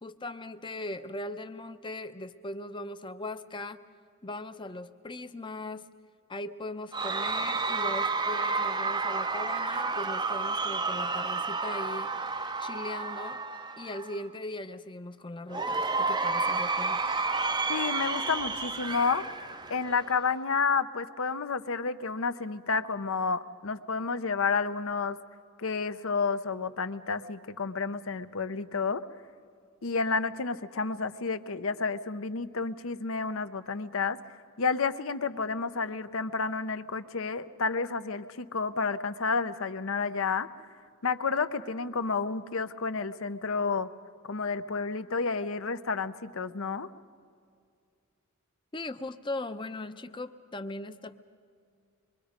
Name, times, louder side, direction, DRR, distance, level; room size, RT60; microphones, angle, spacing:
voice 1, 0.0-3.8 4.2-5.8 6.3-12.1 12.6-13.4 13.8-17.0 48.7-51.2, left 2 dB, 20° left, 10 dB, 0.7 m, -39 dB
Cheering / Crowd, 6.9-14.2 15.5-20.2, right 3 dB, 20° right, 0.6 m, -31 dB
voice 2, 17.7-19.2 19.7-25.2 25.6-29.0 29.8-34.2 34.6-40.5 41.0-43.9 44.3-46.9, left 4 dB, 65° left, 11 dB, 0.8 m, -30 dB
26.0 x 22.5 x 5.1 m, 2.3 s
head